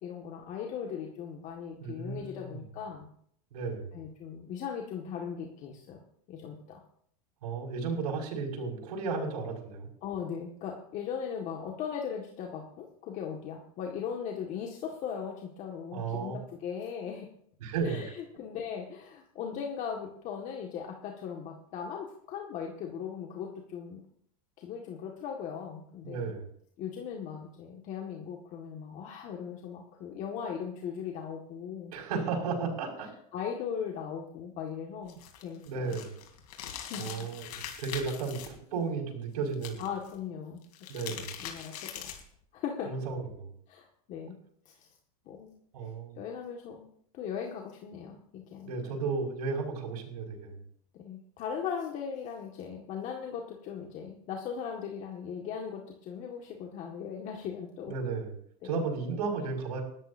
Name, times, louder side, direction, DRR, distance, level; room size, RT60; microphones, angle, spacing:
voice 1, 0.0-3.1 3.9-6.0 6.3-6.8 10.0-17.3 17.8-24.0 24.6-26.3 26.8-31.9 32.3-32.8 33.3-36.0 36.8-37.1 39.8-40.6 41.1-42.1 42.5-42.9 43.7-44.4 44.7-44.9 45.3-45.5 45.8-45.9 46.2-46.9 47.1-48.7 49.0-49.2 51.0-57.9 58.6-58.8, left 7 dB, 40° left, 0 dB, 1.9 m, -38 dB
voice 2, 1.8-2.6 3.5-3.9 7.4-9.9 15.9-16.4 17.6-18.1 26.0-26.5 31.9-33.1 35.6-36.1 36.9-39.8 40.9-41.3 42.9-43.5 45.7-46.2 48.7-50.6 57.9-58.3 58.6-59.8, right 4 dB, 90° right, -2 dB, 5.7 m, -34 dB
sound 1, 35.1-38.5 39.5-40.1 40.6-42.3, left 9 dB, 85° left, 3.3 m, -42 dB
20.5 x 13.0 x 2.8 m, 0.65 s
supercardioid pair, 140°, 19 cm